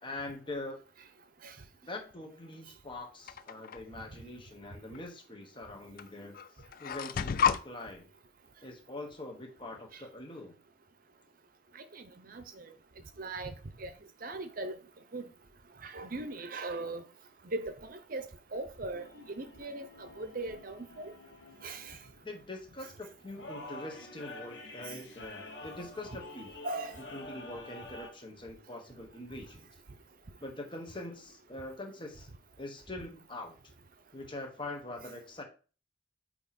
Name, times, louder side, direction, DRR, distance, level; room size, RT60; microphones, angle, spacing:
voice 1, 0.0-0.8 1.8-6.4 6.8-8.1 8.6-10.5 22.2-26.5 27.1-29.7 30.4-32.3 32.6-33.5 34.1-35.4, left 2 dB, 25° left, 1.3 m, -43 dB
sound 1, 3.3-3.8 4.9-5.0 6.0-6.1 6.3-7.6, left 7 dB, 50° left, 0.3 m, -30 dB
voice 2, 11.7-12.7 13.2-13.5 13.8-13.9 14.2-14.8 15.1-15.3 15.8-17.0 17.4-21.1 21.6-22.0 26.6-27.0, right 2 dB, 50° right, 0.7 m, -39 dB
sound 2, 19.0-28.1, left 2 dB, 70° left, 1.3 m, -48 dB
8.3 x 3.0 x 4.2 m
head